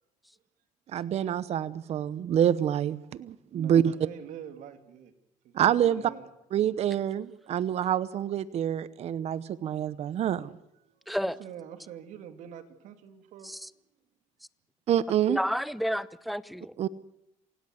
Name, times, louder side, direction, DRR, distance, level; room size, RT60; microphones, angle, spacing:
voice 1, 0.9-3.9 5.5-6.1 6.5-10.5 14.9-15.4 16.8-16.9, right 10 dB, 55° right, 17 dB, 0.9 m, -27 dB
voice 2, 3.5-5.1 5.4-6.3 7.4-7.5 9.4-9.5 9.9-10.1 10.8-13.5, right 9 dB, 75° right, 8 dB, 2.9 m, -46 dB
voice 3, 11.1-11.4 13.4-13.7 15.3-16.7, equal, ahead, 16 dB, 0.9 m, -31 dB
27.0 x 17.0 x 8.0 m, 0.85 s
cardioid pair, 105°, 13 cm